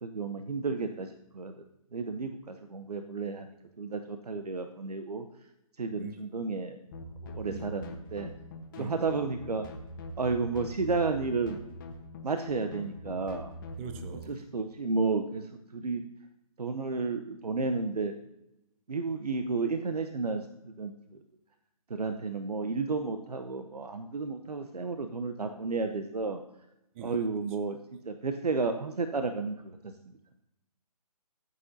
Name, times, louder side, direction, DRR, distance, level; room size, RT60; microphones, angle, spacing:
voice 1, 0.0-1.6 1.9-3.5 3.8-5.2 5.8-6.8 7.2-8.3 8.8-9.7 10.2-11.6 12.2-13.5 14.3-16.0 16.6-18.1 18.9-20.9 21.9-26.4 27.0-29.9, right 4 dB, 85° right, 7 dB, 0.8 m, -32 dB
sound 1, 6.9-14.2, left 1 dB, 30° left, 1.2 m, -43 dB
voice 2, 8.7-9.1 13.8-14.5 26.9-27.1, right 6 dB, 20° right, 9 dB, 0.6 m, -42 dB
14.0 x 8.4 x 2.8 m, 0.86 s
figure-of-eight pair, 150°, 20 cm